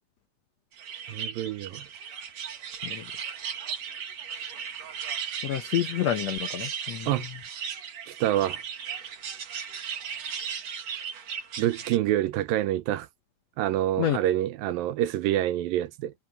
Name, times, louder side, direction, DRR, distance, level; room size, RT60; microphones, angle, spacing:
sound 1, 0.8-12.0, right 7 dB, 50° right, 2.7 m, -36 dB
voice 1, 1.1-1.9 7.1-7.3 8.1-8.6 11.6-13.1 13.6-16.1, right 13 dB, 75° right, 2.5 m, -27 dB
voice 2, 5.4-7.1 14.0-14.2, left 11 dB, 85° left, 1.5 m, -28 dB
omnidirectional pair, 4.3 m